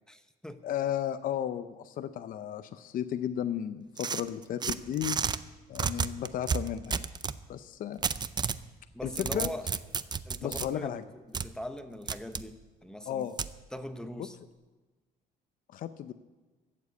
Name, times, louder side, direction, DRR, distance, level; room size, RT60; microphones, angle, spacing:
voice 1, 0.1-0.6 8.9-9.7 10.2-11.0 11.3-13.3 13.7-14.4, left 1 dB, 5° left, 9 dB, 0.9 m, -41 dB
voice 2, 0.6-5.2 5.7-7.1 7.5-8.0 9.0-9.5 10.4-11.0 13.1-13.4 15.7-16.1, left 10 dB, 55° left, 11 dB, 0.6 m, -34 dB
sound 1, 4.0-5.4 5.7-7.4 8.0-8.6 9.0-10.7 11.3-11.5 12.1-12.4 13.4-13.5, right 6 dB, 25° right, 0.5 m, -31 dB
15.0 x 7.4 x 8.2 m, 1.2 s
cardioid pair, 110°, 17 cm